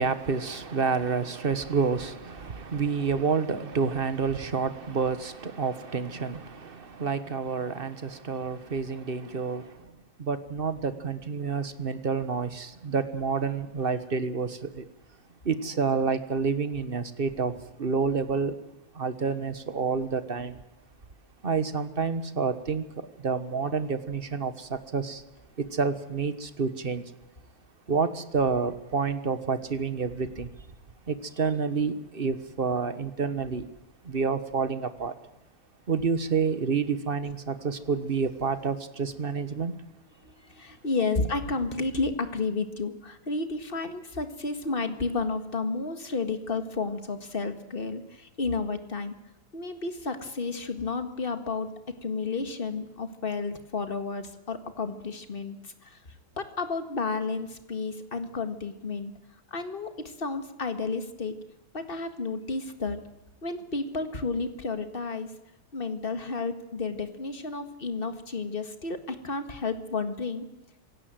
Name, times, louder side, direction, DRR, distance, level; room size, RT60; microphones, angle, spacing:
voice 1, 0.0-9.9 10.2-14.9 15.4-17.5 17.8-18.6 18.9-20.6 21.4-25.2 25.6-27.0 27.9-30.5 31.1-33.6 34.0-35.1 35.9-39.8, right 5 dB, 35° right, 12 dB, 1.4 m, -29 dB
voice 2, 40.2-49.2 49.5-51.7 52.0-56.0 56.4-59.1 59.5-61.4 61.7-63.0 63.4-65.3 65.7-70.5, left 3 dB, 35° left, 8 dB, 2.0 m, -31 dB
26.5 x 17.0 x 7.7 m, 0.97 s
omnidirectional pair, 1.7 m